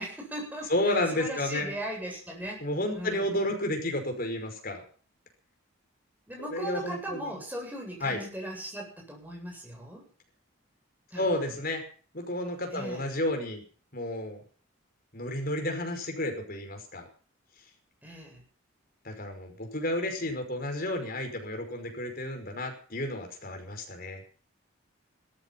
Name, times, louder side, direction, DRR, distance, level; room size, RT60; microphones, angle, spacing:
voice 1, 0.0-3.4 6.3-10.1 11.1-11.5 12.7-13.1 18.0-18.4, right 1 dB, 10° right, 0 dB, 7.8 m, -39 dB
voice 2, 0.7-1.7 2.6-4.8 6.4-7.3 8.0-8.2 11.2-11.8 12.1-13.6 13.9-14.4 15.1-17.1 19.0-24.2, left 1 dB, 45° left, 4 dB, 5.3 m, -31 dB
16.5 x 14.0 x 5.9 m, 0.43 s
head